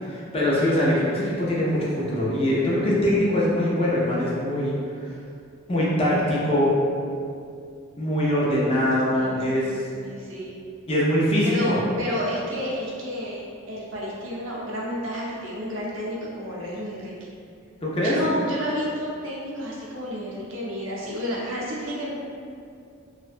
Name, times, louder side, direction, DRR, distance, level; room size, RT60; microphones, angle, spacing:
voice 1, 0.1-5.1 5.7-6.8 8.0-9.8 10.9-11.8 17.8-18.1, left 1 dB, 30° left, -5 dB, 0.4 m, -23 dB
voice 2, 9.1-10.5 11.4-13.4 13.7-17.1 18.0-22.1, equal, 70° right, -5 dB, 0.6 m, -31 dB
2.5 x 2.1 x 2.4 m, 2.4 s
head